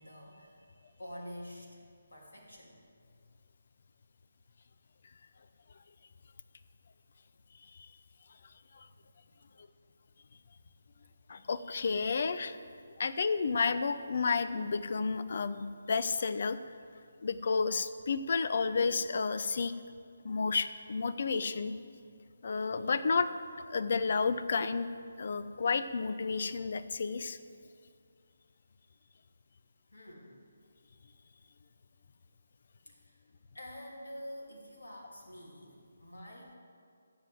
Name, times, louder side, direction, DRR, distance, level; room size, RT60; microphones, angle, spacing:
voice 1, 0.0-1.8 2.1-2.8 5.1-5.2 9.2-9.4 10.6-10.7 29.9-30.4 32.9-33.2 33.5-36.6, equal, 65° left, -2 dB, 3.1 m, -48 dB
voice 2, 11.3-12.6 13.0-16.6 17.2-19.7 20.2-21.7 22.4-23.3 23.6-24.9 25.2-27.4, left 4 dB, 50° left, 13 dB, 0.6 m, -31 dB
15.0 x 7.6 x 7.9 m, 2.2 s
figure-of-eight pair, 145°, 0 cm